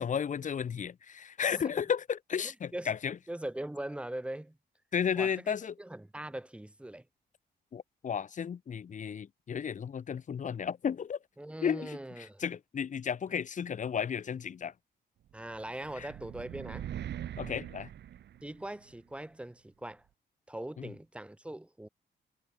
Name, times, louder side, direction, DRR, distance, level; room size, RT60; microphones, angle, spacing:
voice 1, 0.0-3.2 4.9-5.7 7.7-11.2 11.6-14.7 16.0-16.1 17.4-17.9 20.8-20.9, left 7 dB, 45° left, 3.2 m, -33 dB
voice 2, 2.4-2.9 3.3-4.6 5.1-7.0 11.4-12.4 15.3-16.9 18.4-20.0 20.5-21.9, right 1 dB, 5° right, 3.6 m, -41 dB
sound 1, 15.5-18.9, right 10 dB, 80° right, 5.9 m, -42 dB
wide cardioid pair, 170°, 18 cm